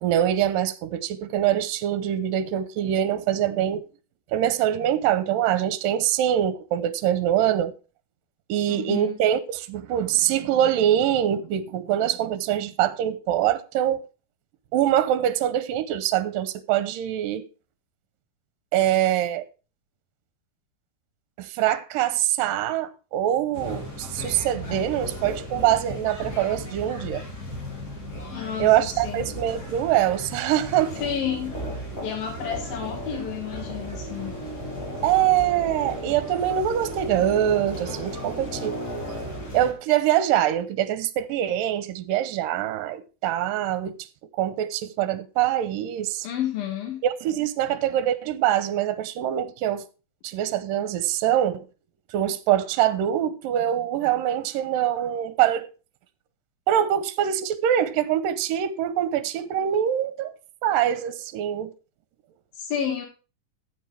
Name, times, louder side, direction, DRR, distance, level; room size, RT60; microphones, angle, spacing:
voice 1, 0.0-3.8 4.3-7.7 8.5-14.1 14.7-17.4 18.7-19.4 21.4-27.2 28.6-31.0 35.0-38.7 39.5-43.9 44.4-46.3 47.0-49.9 50.2-51.7 52.1-55.7 56.7-60.3 60.6-61.7, right 11 dB, 75° right, 2.4 m, -24 dB
voice 2, 8.7-9.2 28.3-29.3 31.0-31.5 32.0-34.3 46.2-47.0 62.5-63.1, left 8 dB, 80° left, 3.6 m, -30 dB
sound 1, 23.5-39.7, equal, 25° left, 3.5 m, -35 dB
14.5 x 7.3 x 3.3 m
omnidirectional pair, 4.2 m